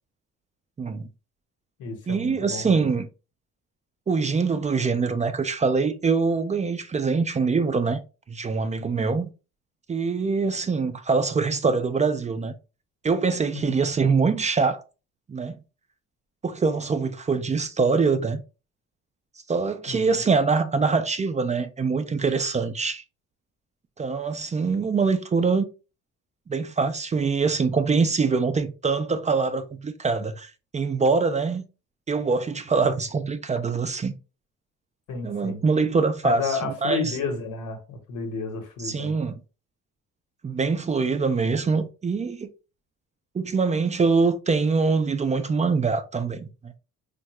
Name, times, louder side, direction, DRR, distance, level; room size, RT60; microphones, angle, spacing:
voice 1, 0.8-1.1 2.1-3.1 4.1-8.0 8.3-9.3 9.9-12.5 13.0-14.8 15.3-15.6 16.4-18.4 19.5-23.0 24.0-25.7 26.5-31.6 32.1-34.1 35.2-37.2 38.8-39.4 40.4-42.5 43.3-46.7, right 4 dB, 25° right, 0.3 m, -24 dB
voice 2, 1.8-2.8 13.6-13.8 19.9-20.1 35.1-35.6 36.2-39.2, left 4 dB, 85° left, 1.0 m, -31 dB
3.6 x 2.2 x 3.0 m
cardioid pair, 90°, 30 cm